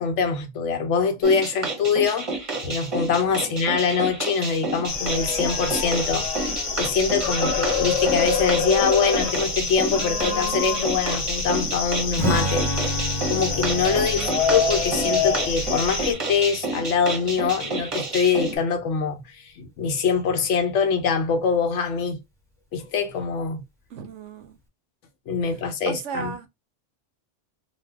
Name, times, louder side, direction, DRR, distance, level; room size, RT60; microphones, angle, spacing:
voice 1, 0.0-22.2 22.7-23.6 25.3-26.3, left 5 dB, 75° left, 1.0 m, -24 dB
sound 1, 1.2-18.6, right 3 dB, 30° right, 0.7 m, -30 dB
sound 2, 4.9-16.1, left 5 dB, 45° left, 0.5 m, -26 dB
Strum, 12.2-17.8, right 1 dB, ahead, 1.0 m, -31 dB
voice 2, 23.9-24.6 25.9-26.5, right 7 dB, 75° right, 0.9 m, -35 dB
2.7 x 2.1 x 3.3 m
omnidirectional pair, 1.3 m